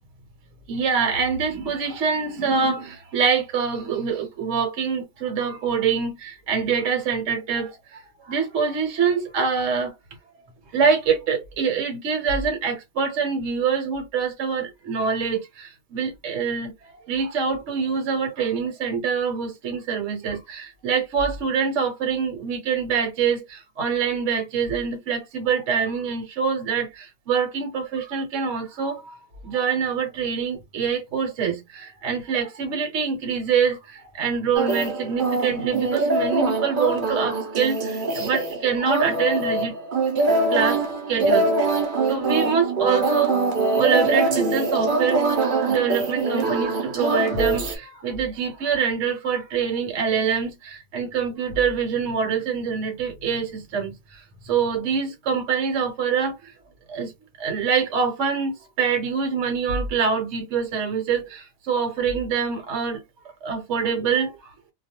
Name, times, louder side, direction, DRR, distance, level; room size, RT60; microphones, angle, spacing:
voice 1, 0.7-7.7 8.3-9.9 10.7-16.7 17.1-29.0 29.4-33.8 34.2-39.7 40.5-40.8 41.1-41.5 42.1-43.4 43.7-45.2 45.7-53.9 54.5-56.4 56.9-57.1 57.4-63.0 63.4-64.3, right 6 dB, 65° right, 1.0 m, -25 dB
sound 1, 34.5-47.7, right 3 dB, 45° right, 0.7 m, -23 dB
2.3 x 2.2 x 2.8 m
omnidirectional pair, 1.4 m